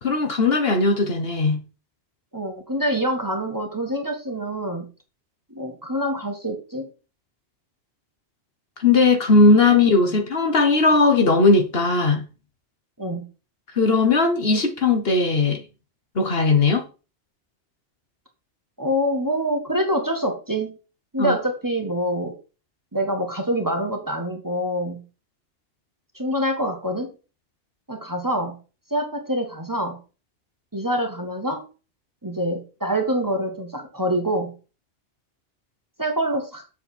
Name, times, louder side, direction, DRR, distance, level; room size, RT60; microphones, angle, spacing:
voice 1, 0.0-1.6 8.8-12.2 13.7-15.6 16.1-16.8 21.2-21.3, left 3 dB, 55° left, 1.5 m, -18 dB
voice 2, 2.3-4.9 5.5-6.9 9.5-9.7 10.0-10.2 13.0-13.3 18.8-20.8 21.1-22.4 22.9-25.0 26.1-27.1 27.9-28.6 28.9-30.0 30.7-31.7 32.2-34.5 36.0-36.6, equal, 15° right, 1.6 m, -26 dB
7.1 x 7.0 x 4.3 m
omnidirectional pair, 1.2 m